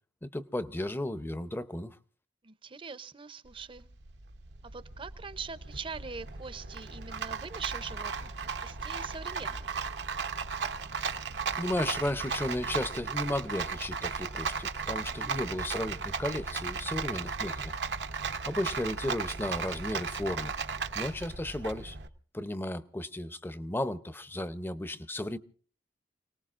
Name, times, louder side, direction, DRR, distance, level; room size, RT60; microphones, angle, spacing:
voice 1, 0.2-1.9 11.0-11.2 11.6-17.8 18.5-20.5 20.9-22.0 22.3-25.4, left 1 dB, 15° left, 0.7 m, -34 dB
voice 2, 2.4-3.9 4.6-9.7 15.1-15.5, right 5 dB, 30° right, 0.7 m, -43 dB
Rattle, 3.5-22.1, right 5 dB, 80° right, 1.0 m, -36 dB
29.0 x 18.5 x 2.5 m
head